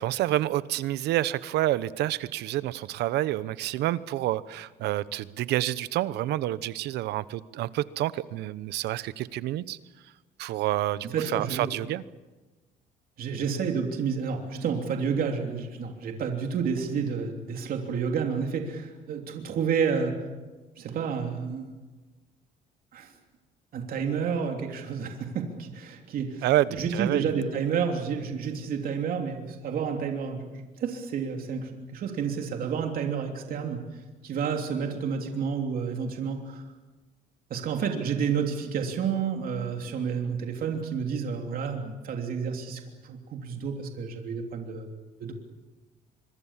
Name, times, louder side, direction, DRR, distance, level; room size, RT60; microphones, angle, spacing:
voice 1, 0.0-9.8 10.4-12.0 26.4-27.3, right 14 dB, 80° right, 17 dB, 0.9 m, -28 dB
voice 2, 11.0-11.7 13.2-20.2 20.8-21.7 22.9-23.1 23.7-26.4 26.7-33.8 34.2-36.6 37.5-44.9 45.2-45.3, right 6 dB, 60° right, 3 dB, 3.2 m, -30 dB
25.5 x 24.0 x 7.4 m, 1.2 s
cardioid pair, 110°, 17 cm